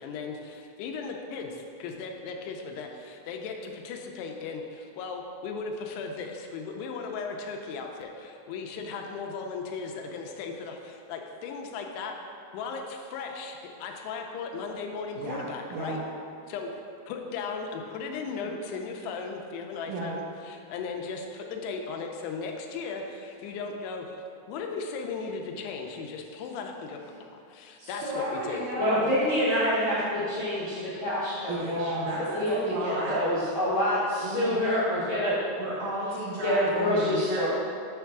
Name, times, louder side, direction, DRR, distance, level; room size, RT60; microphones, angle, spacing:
voice 1, 0.0-12.1 12.5-16.0 16.5-16.7 17.1-24.1 24.5-28.6, left 4 dB, 85° left, 2 dB, 2.7 m, -37 dB
voice 2, 15.2-16.0 18.4-18.5 19.8-20.2 27.8-29.1 31.5-33.2 34.2-34.6 35.6-37.5, right 1 dB, 80° right, -7 dB, 1.8 m, -33 dB
voice 3, 28.7-31.9 32.2-35.4 36.4-37.5, left 1 dB, 70° left, -13 dB, 1.2 m, -27 dB
7.2 x 3.4 x 5.9 m, 2.4 s
omnidirectional pair, 4.7 m